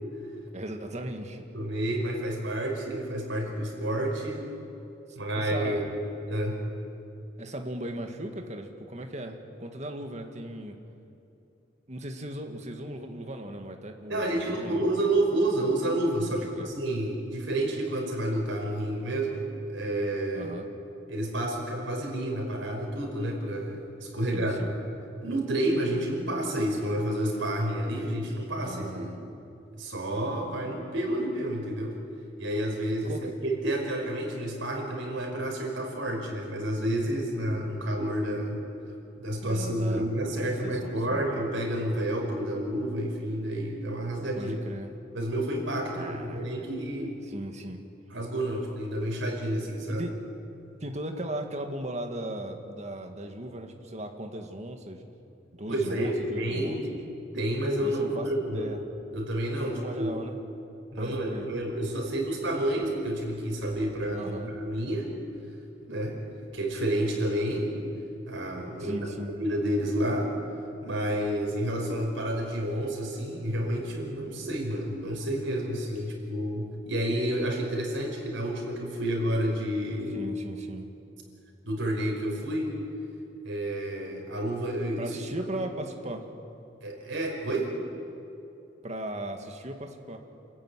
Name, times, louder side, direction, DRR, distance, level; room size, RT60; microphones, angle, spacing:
voice 1, 0.5-1.4 5.1-5.8 7.4-10.8 11.9-14.9 16.3-16.7 20.3-20.7 24.2-24.7 28.6-29.2 33.0-33.3 39.4-40.1 40.4-41.3 44.4-44.9 45.9-46.7 47.2-47.8 49.9-50.2 50.8-55.0 55.5-57.0 57.8-58.8 59.5-60.3 61.0-61.5 64.1-64.5 68.8-69.3 80.1-80.9 85.0-86.3 88.8-90.2, right 1 dB, 35° right, 4 dB, 2.0 m, -37 dB
voice 2, 1.5-4.4 5.2-5.8 6.3-6.6 14.1-20.5 21.1-24.7 25.2-29.1 29.7-32.0 32.4-38.6 39.2-44.6 45.1-47.2 48.1-50.1 55.7-56.8 57.3-58.7 59.1-60.2 60.9-65.1 65.9-66.2 66.5-67.7 68.3-69.1 69.4-70.3 70.8-80.2 81.6-82.7 83.4-85.1 85.5-85.6 86.8-87.7, right 1 dB, 90° right, 1 dB, 5.4 m, -30 dB
27.5 x 15.0 x 9.8 m, 2.7 s
head